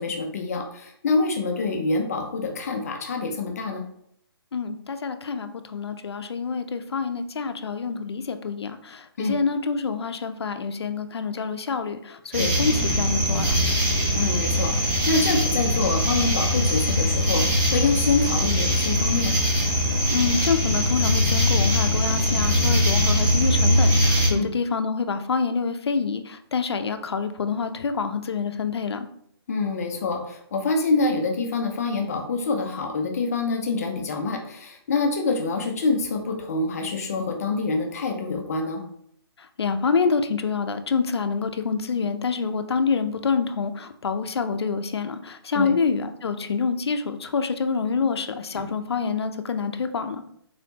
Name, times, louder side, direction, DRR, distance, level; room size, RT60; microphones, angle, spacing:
voice 1, 0.0-3.8 9.2-9.4 12.4-12.5 14.1-19.4 24.3-24.5 29.5-38.8 45.5-45.7, left 3 dB, 35° left, 3 dB, 0.6 m, -26 dB
voice 2, 4.5-13.5 20.1-29.1 39.6-50.2, left 5 dB, 80° left, 8 dB, 0.6 m, -27 dB
sound 1, 12.3-24.3, equal, 10° right, 0.9 m, -22 dB
4.1 x 3.9 x 2.8 m, 0.70 s
hypercardioid pair, 165°, 13 cm